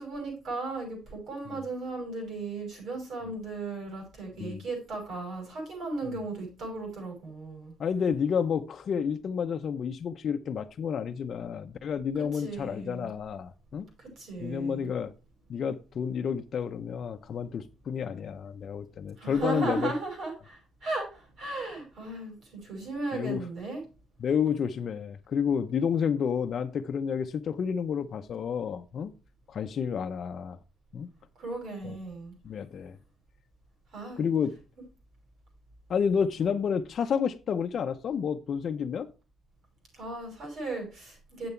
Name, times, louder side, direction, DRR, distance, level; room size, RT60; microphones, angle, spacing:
voice 1, 0.0-7.7 12.4-13.1 14.2-14.9 19.2-21.1 21.4-22.3 22.6-23.8 31.4-32.3 33.9-34.2 40.0-41.5, right 2 dB, 70° right, 1 dB, 6.0 m, -36 dB
voice 2, 7.8-13.9 14.4-15.1 15.5-19.9 23.1-23.5 24.2-29.1 29.5-30.6 30.9-31.1 31.8-32.0 32.4-33.0 34.2-34.5 35.9-39.1, left 7 dB, 60° left, 7 dB, 0.6 m, -30 dB
7.9 x 7.0 x 4.4 m, 0.31 s
cardioid pair, 90°, 0 cm